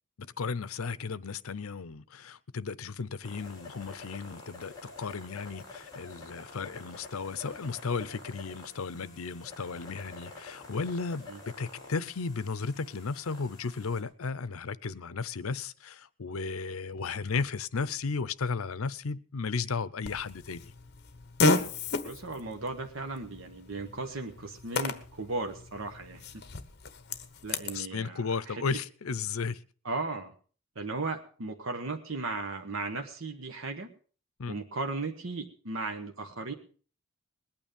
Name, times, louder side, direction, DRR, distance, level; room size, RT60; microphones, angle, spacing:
voice 1, 0.4-20.7 27.7-29.6 34.4-34.6, left 4 dB, 85° left, 0.7 m, -34 dB
sound 1, 3.2-14.0, left 3 dB, 20° left, 4.3 m, -48 dB
Fart, 20.0-27.8, left 2 dB, 50° left, 1.2 m, -33 dB
voice 2, 22.0-26.5 27.4-28.6 29.8-30.3 30.7-33.9 34.5-36.5, right 3 dB, 70° right, 1.2 m, -36 dB
20.5 x 9.1 x 5.2 m
head